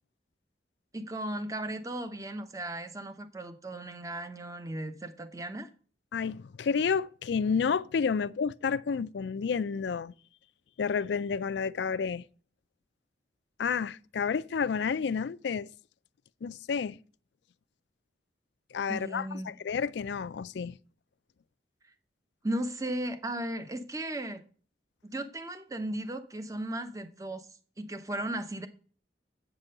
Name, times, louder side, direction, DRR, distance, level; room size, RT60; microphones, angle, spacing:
voice 1, 0.9-5.7 18.9-19.5 22.4-24.4 25.0-27.5 27.8-28.7, right 1 dB, 20° right, 0.8 m, -36 dB
voice 2, 6.1-10.1 10.8-12.3 13.6-15.7 16.4-17.0 18.7-20.8, left 6 dB, 75° left, 0.4 m, -30 dB
8.4 x 6.0 x 6.6 m
head